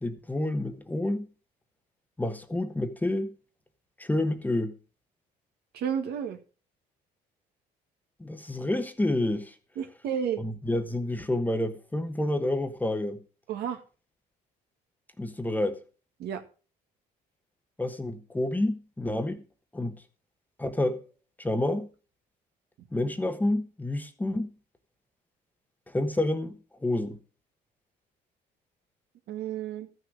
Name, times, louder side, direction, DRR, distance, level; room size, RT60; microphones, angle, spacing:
voice 1, 0.0-1.3 2.2-3.3 4.0-4.7 8.2-9.5 10.4-13.2 15.2-15.8 17.8-19.4 19.7-20.0 20.6-21.0 21.4-21.9 22.9-24.5 25.9-27.2, left 1 dB, 10° left, 1.2 m, -29 dB
voice 2, 5.7-6.4 9.8-10.4 13.5-13.8 16.2-16.4 29.3-29.9, right 8 dB, 70° right, 1.8 m, -31 dB
13.5 x 6.3 x 6.3 m
cardioid pair, 110°, 17 cm